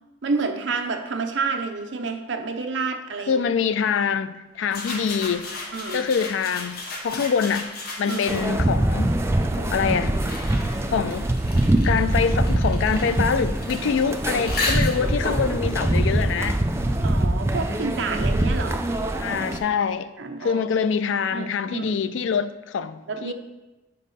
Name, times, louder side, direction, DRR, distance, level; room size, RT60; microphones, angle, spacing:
voice 1, 0.2-3.4 5.7-6.1 8.0-8.3 17.0-18.9 20.2-20.6 21.3-22.0 23.1-23.3, right 4 dB, 75° right, 0.6 m, -29 dB
voice 2, 3.3-5.5 5.9-7.7 8.0-9.2 9.6-10.2 10.9-11.3 11.8-16.6 19.2-20.1 20.4-23.3, left 6 dB, 75° left, 0.3 m, -25 dB
sound 1, 4.7-8.7 9.5-16.9, left 2 dB, 50° left, 0.9 m, -34 dB
sound 2, 8.3-19.6, right 1 dB, 15° right, 0.4 m, -23 dB
5.3 x 5.3 x 4.1 m
head